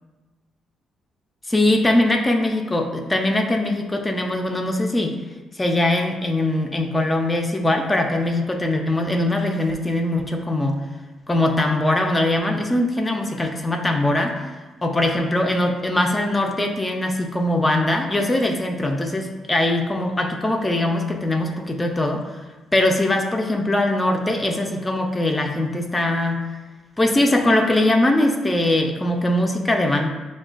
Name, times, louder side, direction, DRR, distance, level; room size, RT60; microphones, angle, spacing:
voice 1, 1.5-5.2 5.5-10.8 11.3-14.4 14.8-22.2 22.7-26.4 27.0-30.1, left 1 dB, 20° left, 2 dB, 0.4 m, -21 dB
6.4 x 2.2 x 2.4 m, 1.2 s
cardioid pair, 90°, 0 cm